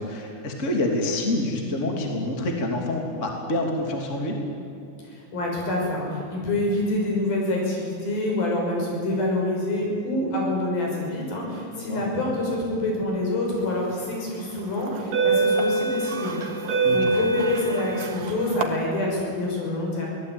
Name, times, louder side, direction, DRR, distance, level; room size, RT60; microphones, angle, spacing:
voice 1, 0.0-4.4 11.7-12.0 16.8-17.1, left 1 dB, 20° left, 1 dB, 2.7 m, -27 dB
voice 2, 5.1-16.6 16.9-20.1, left 2 dB, 70° left, -1 dB, 7.6 m, -26 dB
sound 1, 13.9-14.1 14.8-18.6, right 3 dB, 65° right, 3.0 m, -24 dB
24.0 x 18.0 x 9.2 m, 2.5 s
omnidirectional pair, 4.3 m